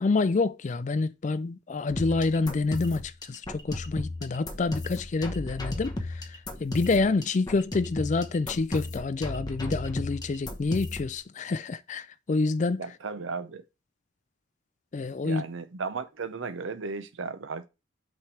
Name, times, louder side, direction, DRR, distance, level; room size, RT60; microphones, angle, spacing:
voice 1, 0.0-6.3 6.6-12.8 14.9-15.4, left 3 dB, 40° left, 0.4 m, -27 dB
sound 1, 1.9-11.2, left 1 dB, 20° left, 1.0 m, -35 dB
voice 2, 12.8-13.6 15.2-17.7, right 4 dB, 75° right, 0.7 m, -35 dB
5.9 x 3.3 x 5.8 m
head